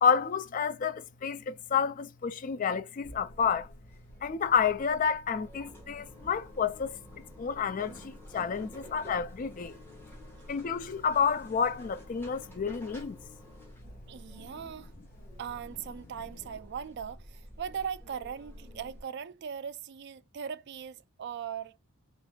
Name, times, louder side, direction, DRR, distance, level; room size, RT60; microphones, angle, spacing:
voice 1, 0.0-3.7 4.2-7.0 7.4-9.8 10.5-13.2, left 6 dB, 35° left, 0.3 m, -29 dB
sound 1, 3.0-19.0, equal, 10° left, 1.3 m, -50 dB
voice 2, 14.1-14.9 15.4-21.8, right 7 dB, 50° right, 0.3 m, -39 dB
4.1 x 3.2 x 2.2 m
head